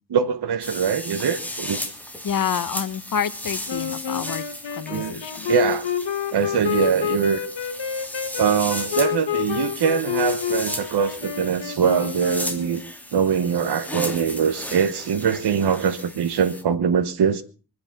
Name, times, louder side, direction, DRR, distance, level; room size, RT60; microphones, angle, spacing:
voice 1, 0.1-1.8 4.9-5.9 6.3-7.4 8.4-12.8 13.1-17.4, right 7 dB, 70° right, 1.1 m, -23 dB
sound 1, 0.6-16.6, left 1 dB, 5° left, 2.7 m, -35 dB
voice 2, 2.2-4.4 4.7-5.5, left 8 dB, 50° left, 1.0 m, -28 dB
sound 2, 3.7-12.9, left 9 dB, 85° left, 1.6 m, -28 dB
24.0 x 9.7 x 5.8 m
wide cardioid pair, 115°, 41 cm